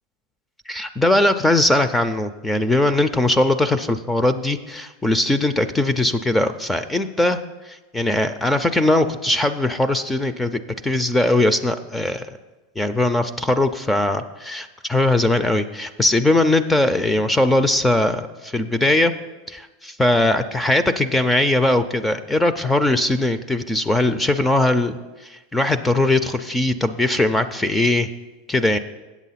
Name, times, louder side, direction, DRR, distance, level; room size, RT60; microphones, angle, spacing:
voice 1, 0.7-7.4 7.7-12.3 12.8-19.1 19.5-28.1 28.5-28.8, left 2 dB, 5° left, 11 dB, 0.4 m, -20 dB
8.3 x 7.4 x 5.7 m, 1.1 s
supercardioid pair, 145°, 0 cm